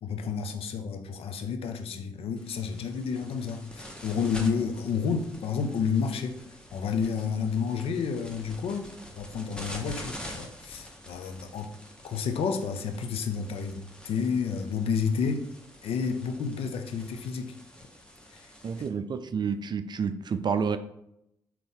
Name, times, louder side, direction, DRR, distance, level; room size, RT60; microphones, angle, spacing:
voice 1, 0.0-6.4 6.7-11.7 12.0-15.4 15.8-17.5 18.3-18.4, left 6 dB, 65° left, 7 dB, 0.5 m, -30 dB
sound 1, 2.4-18.9, left 1 dB, 10° left, 0.9 m, -46 dB
voice 2, 18.6-20.8, right 6 dB, 45° right, 10 dB, 0.4 m, -29 dB
3.7 x 2.9 x 3.5 m, 0.80 s
hypercardioid pair, 45°, 11 cm